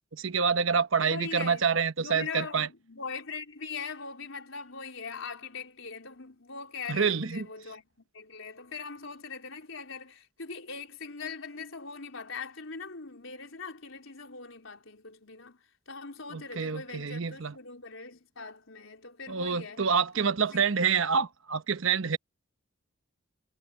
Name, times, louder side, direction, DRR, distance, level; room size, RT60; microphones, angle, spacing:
voice 1, 0.1-2.7 6.9-7.5 16.3-17.5 19.3-22.2, right 6 dB, 75° right, 1.0 m, -27 dB
voice 2, 1.0-1.6 2.0-7.8 8.1-15.6 15.9-19.8 20.1-20.7, left 5 dB, 80° left, 4.0 m, -41 dB
head